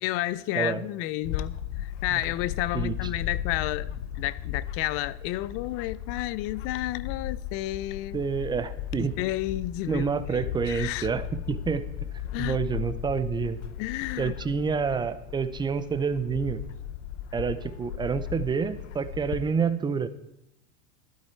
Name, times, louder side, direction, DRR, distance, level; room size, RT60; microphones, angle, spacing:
voice 1, 0.0-3.9 4.2-8.2 9.0-10.0 10.3-11.1 12.3-12.6 13.8-14.3, left 15 dB, 40° left, 0.5 m, -31 dB
Bird / Wind, 1.2-19.5, left 10 dB, 85° left, 0.8 m, -36 dB
voice 2, 8.1-9.2 9.9-11.9 12.4-13.6 14.2-16.6 17.3-20.1, right 6 dB, 15° right, 0.6 m, -28 dB
13.0 x 12.0 x 4.5 m
supercardioid pair, 135°, 35 cm